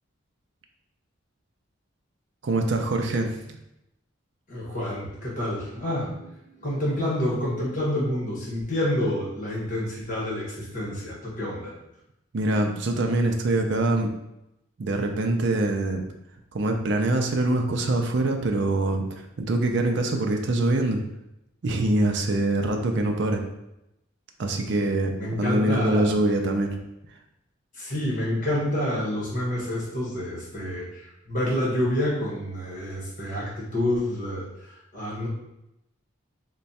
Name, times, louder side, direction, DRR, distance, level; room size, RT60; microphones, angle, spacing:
voice 1, 2.4-3.6 12.3-14.1 14.8-16.0 16.5-21.0 21.6-23.4 24.4-26.8, right 2 dB, 60° right, 4 dB, 0.4 m, -24 dB
voice 2, 4.5-11.7 25.1-26.1 27.7-35.3, left 1 dB, 40° left, -6 dB, 1.3 m, -28 dB
3.2 x 2.2 x 4.0 m, 0.85 s
head